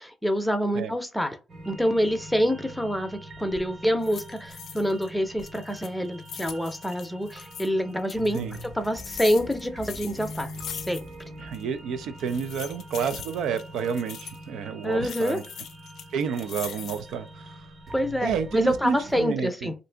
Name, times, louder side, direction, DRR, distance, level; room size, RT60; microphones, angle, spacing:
voice 1, 0.0-1.4 1.7-11.1 14.8-15.4 17.9-19.7, equal, 5° left, 0.6 m, -26 dB
sound 1, 1.5-19.2, right 1 dB, 45° right, 0.8 m, -44 dB
sound 2, 3.3-3.7 4.0-5.1 5.4-7.7 8.1-11.3 11.5-11.6 12.2-14.4 15.0-17.2 17.7-18.2, left 8 dB, 70° left, 0.4 m, -41 dB
voice 2, 11.4-15.4 16.1-17.7 18.2-19.7, right 6 dB, 80° right, 0.4 m, -30 dB
2.7 x 2.6 x 3.3 m
cardioid pair, 90°, 0 cm